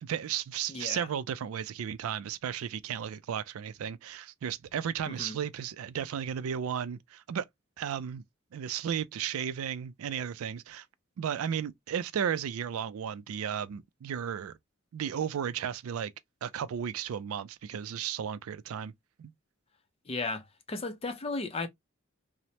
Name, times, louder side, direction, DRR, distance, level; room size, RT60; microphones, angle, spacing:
voice 1, 0.0-7.4 7.8-8.2 8.5-10.9 11.2-14.6 14.9-16.1 16.4-18.9 19.2-19.3, right 8 dB, 85° right, 0.3 m, -34 dB
voice 2, 0.7-1.1 5.1-5.4 20.1-21.7, left 3 dB, 25° left, 0.4 m, -35 dB
3.0 x 2.0 x 2.6 m
head